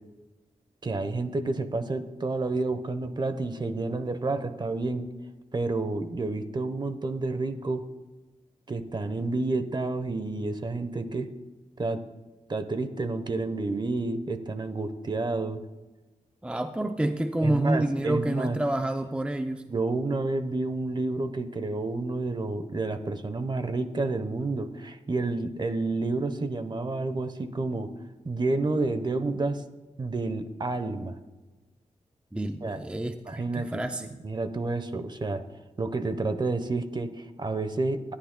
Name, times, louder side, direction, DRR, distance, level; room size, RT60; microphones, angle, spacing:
voice 1, 0.8-5.1 5.5-7.8 8.7-11.3 11.8-12.0 12.5-15.6 17.4-18.6 19.7-27.9 28.2-29.6 30.0-31.2 32.6-32.8 33.3-35.4 35.8-38.0, right 3 dB, 35° right, 10 dB, 0.9 m, -30 dB
voice 2, 16.4-19.7 32.3-34.1, right 1 dB, 10° right, 7 dB, 0.5 m, -28 dB
20.0 x 11.5 x 2.2 m, 1.2 s
wide cardioid pair, 95°, 13 cm